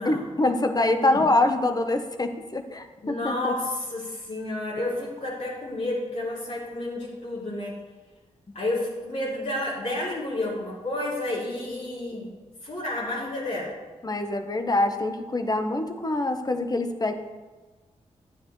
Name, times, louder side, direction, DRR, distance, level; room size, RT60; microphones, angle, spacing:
voice 1, 0.0-3.5 14.0-17.1, left 2 dB, 30° left, 7 dB, 1.0 m, -25 dB
voice 2, 3.0-7.8 8.5-12.3 12.6-13.8, left 1 dB, 70° left, -8 dB, 2.8 m, -30 dB
12.5 x 9.2 x 3.2 m, 1.3 s
cardioid pair, 70°, 13 cm